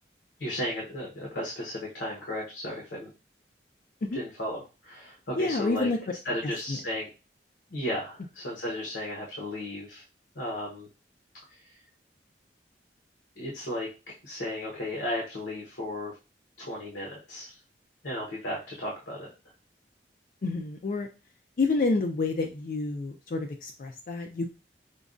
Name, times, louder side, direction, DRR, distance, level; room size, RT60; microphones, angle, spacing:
voice 1, 0.4-3.1 4.1-5.9 6.2-7.1 7.7-10.0 10.3-10.9 11.5-11.8 13.4-16.2 16.6-17.6 18.0-19.3, left 1 dB, 75° left, -3 dB, 0.9 m, -35 dB
voice 2, 5.4-6.0 6.7-6.8 20.4-21.1 21.6-24.5, left 3 dB, 50° left, 3 dB, 0.4 m, -28 dB
5.0 x 2.2 x 2.5 m, 0.30 s
head